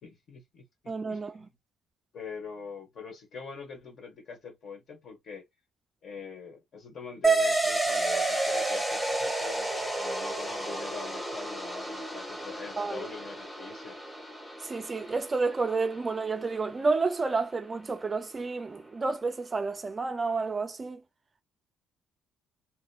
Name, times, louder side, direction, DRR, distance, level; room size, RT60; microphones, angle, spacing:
voice 1, 0.0-1.4 2.1-5.4 6.0-14.0, left 5 dB, 50° left, 1.3 m, -44 dB
voice 2, 0.9-1.3 12.8-13.1 14.6-21.0, right 3 dB, 25° right, 0.3 m, -30 dB
sound 1, 7.2-16.3, right 2 dB, ahead, 1.2 m, -31 dB
2.9 x 2.1 x 2.3 m
cardioid pair, 125°, 0 cm